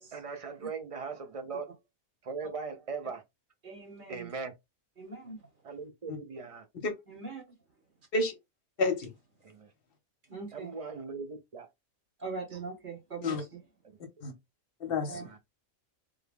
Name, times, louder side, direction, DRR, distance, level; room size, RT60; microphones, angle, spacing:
voice 1, 0.1-1.7 2.2-3.2 4.1-4.5 5.6-6.6 9.4-9.7 10.5-11.7 15.1-15.4, right 5 dB, 60° right, 0.3 m, -39 dB
voice 2, 3.6-4.3 5.0-5.4 7.1-7.4 10.3-10.7 12.2-13.6 15.1-15.3, right 4 dB, 40° right, 1.3 m, -41 dB
voice 3, 8.8-9.1 13.2-13.4 14.2-14.3 14.8-15.4, left 3 dB, 50° left, 1.0 m, -30 dB
3.5 x 2.2 x 3.5 m
omnidirectional pair, 1.4 m